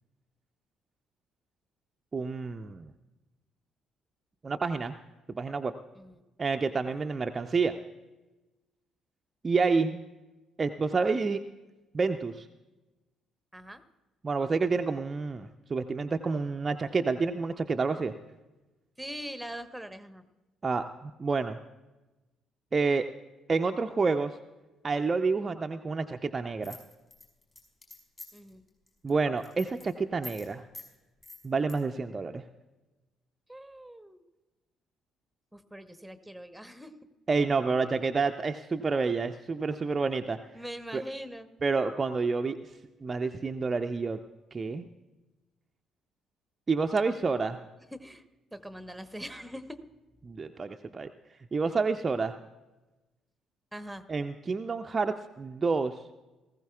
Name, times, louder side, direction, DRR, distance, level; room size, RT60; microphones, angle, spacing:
voice 1, 2.1-2.9 4.4-4.9 5.3-5.7 6.4-7.8 9.4-10.0 10.6-11.4 11.9-12.5 14.2-18.1 20.6-21.6 22.7-23.1 23.5-24.3 24.8-26.8 29.0-30.6 31.4-32.4 37.3-40.4 40.9-41.0 41.6-42.6 43.0-44.2 44.5-44.9 46.7-47.6 50.2-51.1 51.5-52.3 54.1-56.0, right 4 dB, 30° right, 6 dB, 0.4 m, -29 dB
voice 2, 19.0-20.2 28.3-28.6 33.5-34.2 35.5-36.9 40.5-41.5 47.9-48.2 48.5-49.8 53.7-54.0, equal, 5° right, 11 dB, 0.9 m, -42 dB
sound 1, 26.6-28.5 28.9-29.1 29.4-29.9 30.2-30.5 30.7-30.9 31.2-31.8, left 2 dB, 30° left, 5.0 m, -45 dB
19.0 x 15.0 x 2.3 m, 1.1 s
figure-of-eight pair, 45°, 0 cm